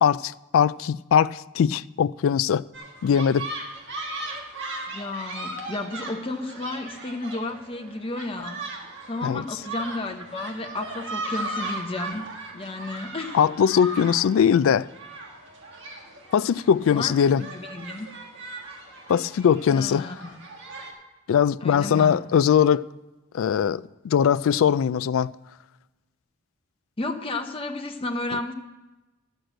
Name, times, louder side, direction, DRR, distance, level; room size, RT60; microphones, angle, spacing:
voice 1, 0.0-2.6 3.0-3.5 9.2-9.4 13.3-14.9 16.3-17.4 19.1-20.1 21.3-22.9 23.3-25.3, left 8 dB, 65° left, 0.3 m, -21 dB
sound 1, 2.7-20.9, right 2 dB, 55° right, 1.8 m, -37 dB
voice 2, 4.9-8.6 9.1-12.3 12.5-13.4 16.9-18.1 19.7-20.4 21.6-22.2 27.0-28.5, left 2 dB, 25° left, 0.9 m, -32 dB
11.5 x 6.5 x 7.7 m
head